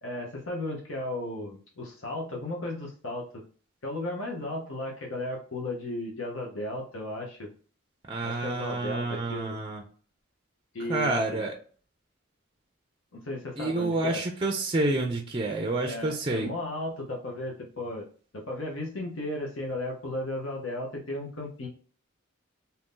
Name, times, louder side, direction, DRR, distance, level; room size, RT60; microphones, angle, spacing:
voice 1, 0.0-3.4 3.8-7.5 8.2-9.6 10.7-11.5 13.1-14.2 15.8-18.1 18.3-21.7, left 1 dB, 75° left, -1 dB, 0.9 m, -35 dB
voice 2, 8.1-9.8 10.9-11.5 13.6-16.5, right 2 dB, 25° right, 3 dB, 0.4 m, -28 dB
2.8 x 2.6 x 3.6 m, 0.41 s
head